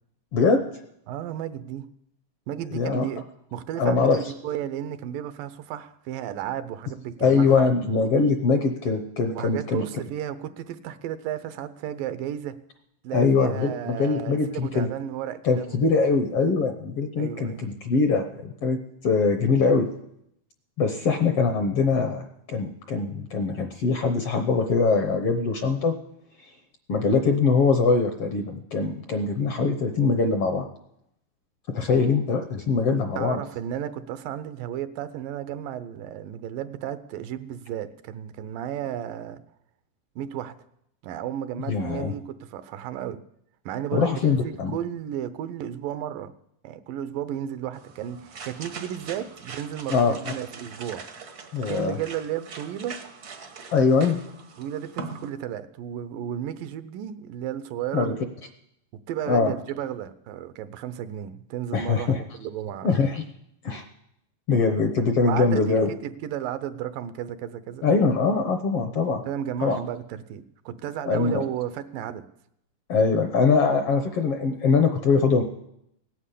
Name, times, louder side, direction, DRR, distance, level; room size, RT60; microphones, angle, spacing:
voice 1, 0.3-0.6 2.7-3.0 3.8-4.3 7.2-9.8 13.1-14.9 15.4-19.9 20.8-22.2 22.5-26.0 26.9-30.6 31.7-33.4 41.7-42.1 43.9-44.7 49.9-50.2 51.5-52.0 53.7-54.2 57.9-58.1 59.3-59.5 61.7-62.2 62.8-63.2 63.6-63.8 64.5-65.9 67.8-69.2 69.6-69.8 71.1-71.4 72.9-75.4, left 4 dB, 65° left, 1.5 m, -22 dB
voice 2, 1.1-1.9 2.5-3.2 3.5-7.7 9.3-12.6 13.0-15.8 17.2-17.7 33.1-39.4 40.2-40.6 41.0-43.2 43.7-46.3 46.6-51.0 51.7-53.0 54.6-58.3 59.1-63.0 65.2-67.8 69.3-72.3, right 10 dB, 85° right, 2.5 m, -33 dB
sound 1, 47.7-55.3, right 4 dB, 70° right, 0.9 m, -41 dB
17.5 x 9.9 x 8.4 m
omnidirectional pair, 3.8 m